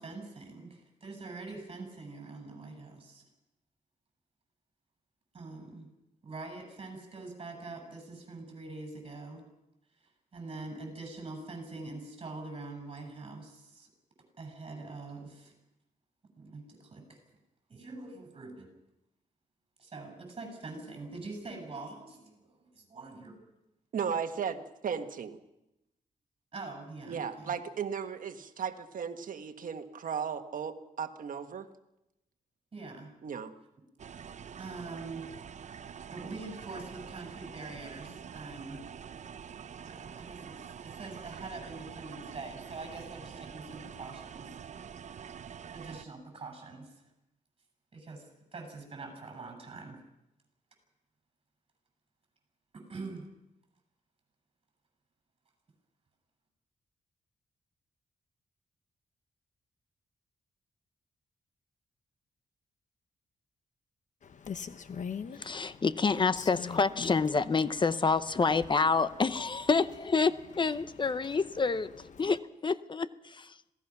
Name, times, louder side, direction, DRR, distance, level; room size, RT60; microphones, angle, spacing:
voice 1, 0.0-3.2 5.3-5.9 6.2-9.4 10.3-13.9 14.4-15.5 16.4-17.2 17.7-18.7 19.8-23.4 26.5-27.6 32.7-33.1 34.6-35.3 36.1-38.8 39.8-44.5 45.7-46.9 47.9-50.0 52.7-53.3, right 3 dB, 40° right, 4 dB, 6.9 m, -44 dB
voice 2, 23.9-25.4 27.1-31.7 33.2-33.5, right 7 dB, 70° right, 7 dB, 1.5 m, -36 dB
sound 1, 34.0-46.1, right 7 dB, 55° right, 0.7 m, -46 dB
Rain, 64.2-72.4, left 6 dB, 60° left, 1.1 m, -45 dB
voice 3, 65.4-73.6, left 4 dB, 35° left, 14 dB, 0.7 m, -28 dB
26.5 x 17.5 x 6.0 m, 0.88 s
wide cardioid pair, 105°, 14 cm